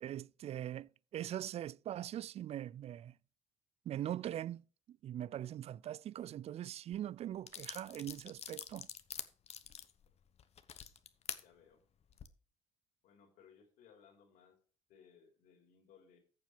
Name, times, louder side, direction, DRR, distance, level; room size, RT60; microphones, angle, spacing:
voice 1, 0.0-3.1 3.9-4.6 4.9-8.9, right 11 dB, 45° right, 0.4 m, -42 dB
sound 1, 6.9-7.0 7.5-11.4 12.0-12.3, left 8 dB, 50° left, 1.1 m, -46 dB
voice 2, 11.4-11.8 13.0-14.6 14.9-16.2, left 7 dB, 70° left, 3.8 m, -63 dB
14.5 x 7.3 x 3.3 m
hypercardioid pair, 60°, 14 cm